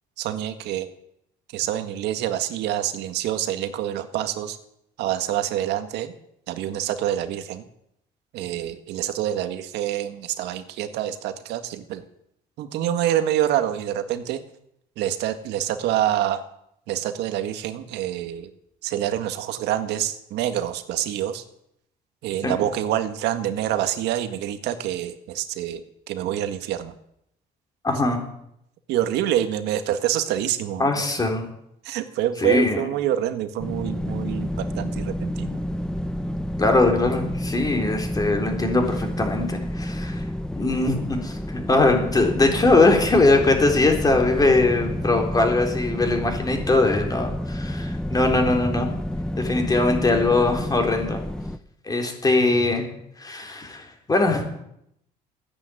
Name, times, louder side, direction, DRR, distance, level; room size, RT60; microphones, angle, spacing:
voice 1, 0.2-0.9 1.5-4.6 5.0-6.1 6.5-7.6 8.3-12.0 12.6-14.4 15.0-16.4 16.9-18.5 18.8-21.4 22.2-26.9 28.9-31.0 31.8-35.6, right 11 dB, 85° right, 9 dB, 1.8 m, -26 dB
voice 2, 27.8-28.2 30.8-31.5 32.4-32.8 36.6-40.2 40.5-48.9 49.4-51.2 51.9-52.9 53.2-54.4, left 2 dB, 20° left, 3 dB, 4.0 m, -21 dB
sound 1, 33.6-51.6, equal, 5° left, 0.7 m, -29 dB
14.5 x 10.5 x 9.2 m, 0.76 s
cardioid pair, 110°, 17 cm